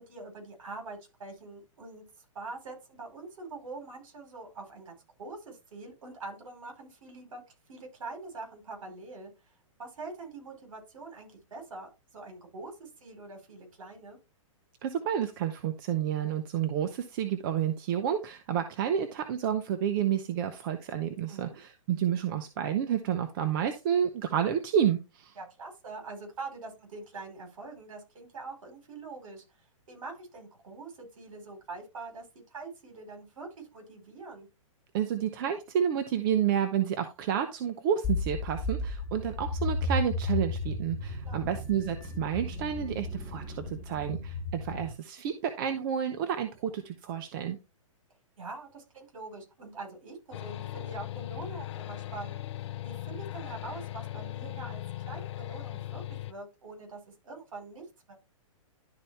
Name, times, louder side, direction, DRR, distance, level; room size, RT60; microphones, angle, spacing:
voice 1, 0.0-2.0 2.3-7.4 7.7-9.3 9.8-14.2 21.3-21.6 25.4-29.4 29.9-34.5 41.2-41.5 48.4-52.4 52.8-56.0 56.3-58.1, right 3 dB, 70° right, 3 dB, 4.4 m, -44 dB
voice 2, 14.8-25.3 34.9-47.6, right 9 dB, 40° right, 8 dB, 0.9 m, -30 dB
sound 1, 38.0-44.9, left 2 dB, 5° left, 2.7 m, -34 dB
sound 2, 50.3-56.3, left 14 dB, 55° left, 0.7 m, -38 dB
11.5 x 4.2 x 3.4 m, 0.26 s
hypercardioid pair, 140°, 17 cm